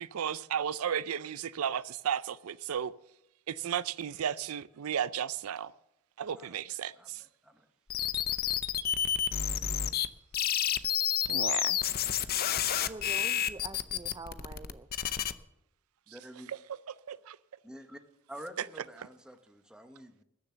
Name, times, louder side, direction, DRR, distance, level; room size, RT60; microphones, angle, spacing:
voice 1, 0.0-2.9 3.5-5.7 6.2-7.2 11.3-11.8 16.5-16.6 17.1-17.4 18.6-18.7, right 8 dB, 75° right, 0.4 m, -34 dB
voice 2, 7.0-7.7 16.1-16.5 17.6-18.0 18.3-20.2, equal, 5° right, 0.9 m, -48 dB
sound 1, 7.9-10.1 10.3-15.3, left 10 dB, 45° left, 0.6 m, -30 dB
voice 3, 12.8-14.9, right 3 dB, 20° right, 0.5 m, -45 dB
20.5 x 7.0 x 6.9 m
head